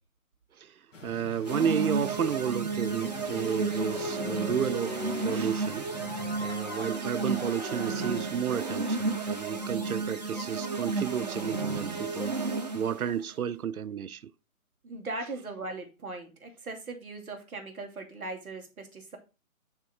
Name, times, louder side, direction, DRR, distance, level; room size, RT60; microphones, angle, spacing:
voice 1, 0.5-5.9 6.4-12.5 12.7-14.3, right 8 dB, 80° right, 0.6 m, -32 dB
sound 1, 0.9-6.6, left 2 dB, 60° left, 1.6 m, -46 dB
sound 2, 1.4-13.0, right 3 dB, 30° right, 0.9 m, -32 dB
sound 3, 2.8-10.1, left 3 dB, 40° left, 2.0 m, -42 dB
voice 2, 14.8-19.2, right 2 dB, ahead, 1.3 m, -39 dB
9.7 x 3.6 x 4.7 m
hypercardioid pair, 180°, 43 cm